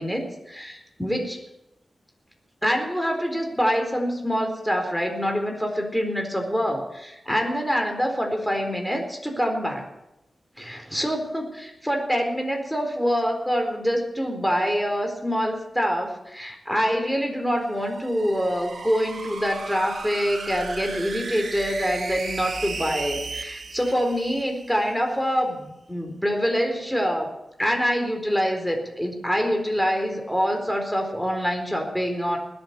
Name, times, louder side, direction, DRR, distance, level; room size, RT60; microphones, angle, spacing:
voice 1, 0.0-1.4 2.6-9.8 10.6-27.3 27.6-32.4, equal, 5° left, 3 dB, 4.2 m, -25 dB
sound 1, 17.5-24.9, right 4 dB, 70° right, 2.1 m, -36 dB
20.5 x 8.0 x 8.2 m, 0.89 s
cardioid pair, 50°, 0 cm